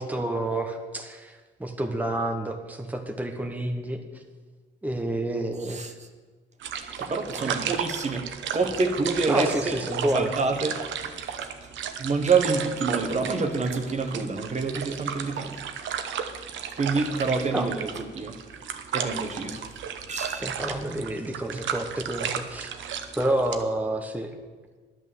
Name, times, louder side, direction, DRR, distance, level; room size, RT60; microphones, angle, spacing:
voice 1, 0.0-4.0 4.8-5.8 7.0-7.1 7.4-7.5 9.3-10.3 17.5-17.7 20.4-22.7 23.2-24.3, right 1 dB, 10° right, 3 dB, 1.2 m, -29 dB
sound 1, 6.6-23.6, right 8 dB, 75° right, 1.0 m, -34 dB
voice 2, 7.0-8.3 8.5-9.8 10.1-11.5 12.0-15.6 16.8-18.4 18.9-19.8 20.1-20.5, right 4 dB, 35° right, 6 dB, 1.4 m, -27 dB
10.5 x 8.9 x 7.1 m, 1.4 s
cardioid pair, 90°, 20 cm